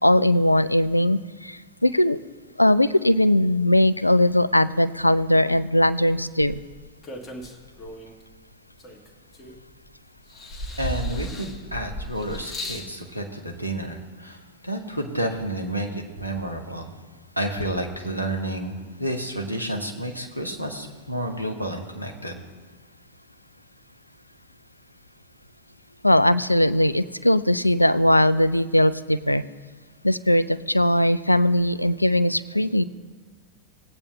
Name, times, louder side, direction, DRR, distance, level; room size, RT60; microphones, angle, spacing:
voice 1, 0.0-2.2 2.6-6.6 26.0-29.4 30.0-32.8, left 1 dB, 85° left, 16 dB, 0.3 m, -20 dB
sound 1, 6.5-8.2 8.8-9.9 10.3-12.9 13.8-13.9, equal, 20° left, 1.6 m, -35 dB
voice 2, 10.8-14.4 14.6-16.9 17.4-22.4, right 1 dB, 90° right, 3 dB, 1.2 m, -30 dB
19.5 x 8.8 x 2.2 m, 1.4 s
figure-of-eight pair, 90°, 0 cm